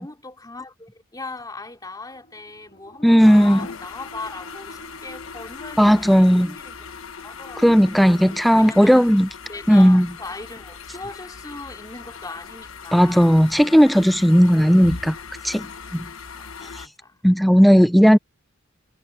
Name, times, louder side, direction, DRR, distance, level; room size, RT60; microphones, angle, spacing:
voice 1, 0.0-6.8 7.2-8.1 8.5-9.1 9.5-13.4 16.3-17.2, left 3 dB, 20° left, 3.1 m, -39 dB
sound 1, 2.1-13.3, equal, 55° left, 2.3 m, -51 dB
voice 2, 3.0-3.7 5.8-6.5 7.6-9.3 9.7-10.1 12.9-15.2 15.4-15.7 15.9-16.0 17.2-18.2, equal, ahead, 0.3 m, -15 dB
sound 2, 3.2-16.9, left 5 dB, 70° left, 1.3 m, -39 dB
head